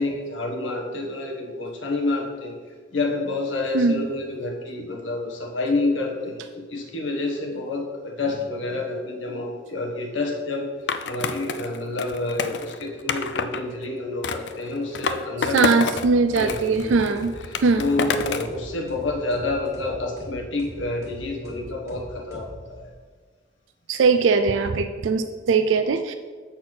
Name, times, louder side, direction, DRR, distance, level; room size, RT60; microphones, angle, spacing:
voice 1, 0.0-2.5 2.9-10.7 11.0-15.7 16.4-22.9, left 2 dB, 90° left, 1 dB, 1.5 m, -28 dB
Skateboard, 10.9-13.6 14.2-16.1 16.3-18.6, left 5 dB, 65° left, 0.4 m, -28 dB
voice 2, 15.5-17.3 17.6-17.9 23.9-26.1, right 4 dB, 85° right, 8 dB, 0.4 m, -20 dB
sound 1, 15.9-23.0, equal, 15° right, 1.3 m, -42 dB
7.6 x 4.4 x 5.9 m, 1.5 s
head